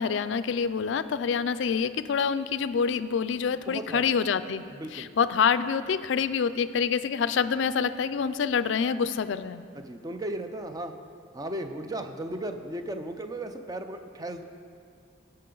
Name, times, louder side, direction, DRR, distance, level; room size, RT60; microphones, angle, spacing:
voice 1, 0.0-4.6 4.9-9.6, left 6 dB, 65° left, 13 dB, 0.3 m, -26 dB
voice 2, 3.7-4.1 4.7-5.1 9.8-10.9 11.3-14.4, right 1 dB, 20° right, 7 dB, 0.5 m, -35 dB
16.5 x 6.6 x 3.9 m, 2.3 s
head